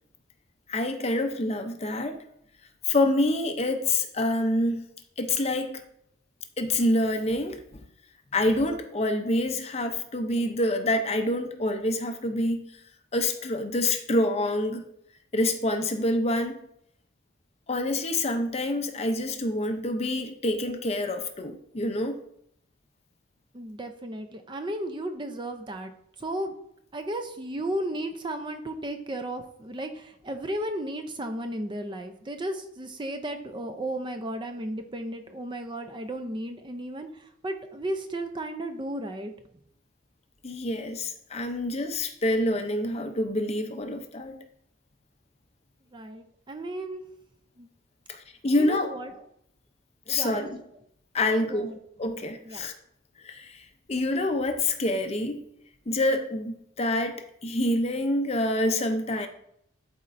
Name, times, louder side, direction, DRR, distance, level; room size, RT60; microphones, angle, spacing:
voice 1, 0.7-2.2 2.9-4.9 5.2-5.8 6.6-7.8 8.3-12.6 13.1-14.9 15.3-16.6 17.7-22.2 40.4-44.4 48.1-48.9 50.1-50.6 51.1-52.7 53.2-55.4 55.9-59.3, left 1 dB, 30° left, 7 dB, 0.6 m, -27 dB
voice 2, 23.5-25.9 26.2-26.5 26.9-39.3 45.9-47.0 47.6-47.7 48.6-49.1 50.1-50.5 51.3-51.8 52.5-52.7, right 1 dB, 25° right, 6 dB, 0.5 m, -34 dB
12.0 x 4.3 x 2.6 m, 0.73 s
head